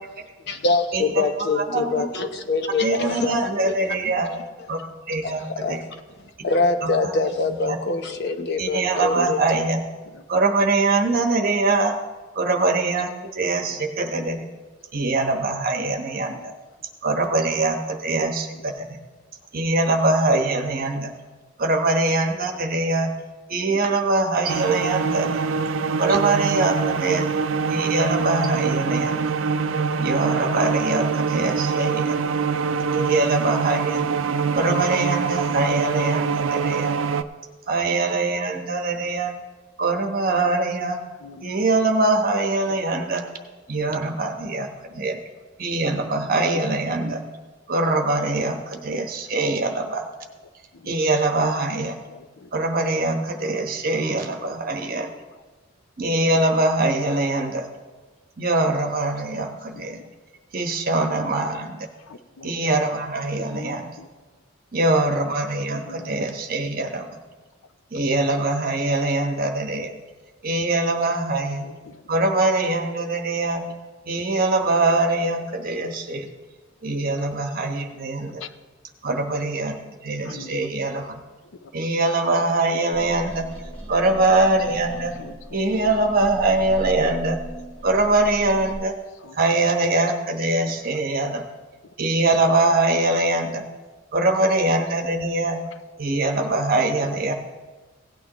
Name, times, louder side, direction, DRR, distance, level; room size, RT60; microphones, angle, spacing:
voice 1, 0.5-3.9 4.3-4.4 5.2-5.8 6.4-9.6, left 3 dB, 60° left, 6 dB, 0.9 m, -24 dB
voice 2, 1.6-2.1 2.8-4.3 4.7-4.8 5.1-5.4 6.8-6.9 7.7-7.8 8.6-9.8 10.3-11.9 12.4-14.5 14.9-16.5 17.0-19.0 19.5-21.1 21.6-23.1 23.5-25.3 26.0-27.3 27.7-29.3 30.0-32.2 32.9-34.1 34.5-36.9 37.7-39.3 39.8-41.0 41.4-43.2 43.7-45.2 45.6-47.2 47.7-50.0 50.9-52.0 52.5-55.1 56.0-57.7 58.4-60.0 60.5-61.8 62.4-63.9 64.7-67.1 67.9-69.9 70.4-71.7 72.1-73.6 74.1-76.3 76.8-78.4 79.0-79.8 80.0-81.2 81.7-83.4 83.9-85.1 85.5-87.4 87.8-88.9 89.4-91.4 92.0-93.6 94.1-95.6 96.0-97.3, right 2 dB, 50° right, 4 dB, 1.2 m, -23 dB
voice 3, 16.1-16.5 18.0-18.2 18.5-18.6 20.9-21.1 28.4-28.5 29.0-29.1 32.7-32.8 33.2-33.3 34.3-34.6 38.5-39.1 41.2-41.5 47.1-47.2 50.7-50.9 52.1-52.5 59.3-60.1 62.1-62.5 63.3-64.1 65.8-66.3 68.9-69.0 71.6-72.0 73.4-73.6 77.0-77.3 77.9-78.5 80.2-80.7 81.6-81.7 82.9-83.3 85.2-85.6 89.2-89.4 90.6-91.0 95.5-95.6, left 4 dB, 75° left, 11 dB, 0.6 m, -44 dB
sound 1, 24.5-37.2, right 5 dB, 85° right, 0.4 m, -24 dB
sound 2, 82.9-88.7, right 1 dB, 5° left, 3.9 m, -37 dB
17.0 x 9.2 x 3.0 m, 1.3 s
head